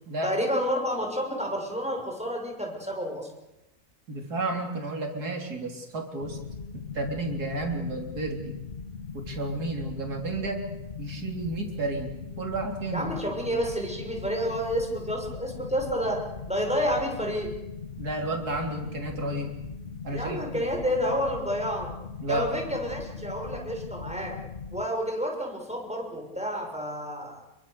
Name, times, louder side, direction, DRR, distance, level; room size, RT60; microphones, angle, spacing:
voice 1, 0.2-3.3 12.9-17.5 20.1-21.9 22.3-24.3 24.7-27.4, equal, 5° right, 1 dB, 6.5 m, -30 dB
voice 2, 4.1-6.4 6.7-8.6 9.1-10.6 11.0-12.1 12.4-13.1 18.0-19.5 20.0-20.7 22.2-22.5, right 2 dB, 80° right, 2 dB, 4.1 m, -32 dB
sound 1, 6.2-24.8, left 5 dB, 45° left, 1.4 m, -40 dB
28.5 x 23.0 x 6.9 m, 0.94 s
omnidirectional pair, 1.6 m